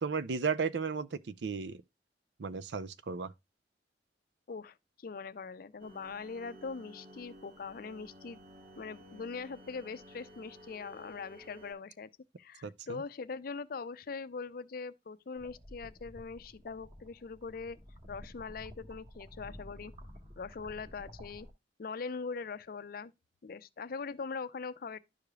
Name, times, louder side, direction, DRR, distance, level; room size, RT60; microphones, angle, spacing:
voice 1, 0.0-1.8 2.4-3.3 12.6-13.0, right 5 dB, 80° right, 0.5 m, -34 dB
voice 2, 4.5-8.4 8.8-12.1 12.4-17.8 18.1-19.9 20.4-21.5 21.8-23.1 23.4-25.0, left 4 dB, 55° left, 0.5 m, -42 dB
sound 1, 5.8-11.7, equal, 55° right, 2.7 m, -54 dB
sound 2, 15.4-21.5, equal, 30° right, 1.7 m, -52 dB
11.5 x 4.9 x 2.3 m
head